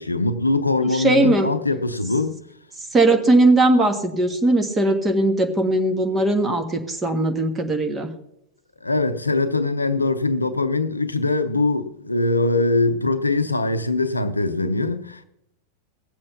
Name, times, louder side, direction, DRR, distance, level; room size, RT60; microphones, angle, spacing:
voice 1, 0.0-2.4 8.8-15.2, left 2 dB, 80° left, 0.7 m, -22 dB
voice 2, 0.9-1.5 2.9-8.1, right 2 dB, 15° right, 1.7 m, -19 dB
18.0 x 7.5 x 5.7 m
figure-of-eight pair, 90°, 0 cm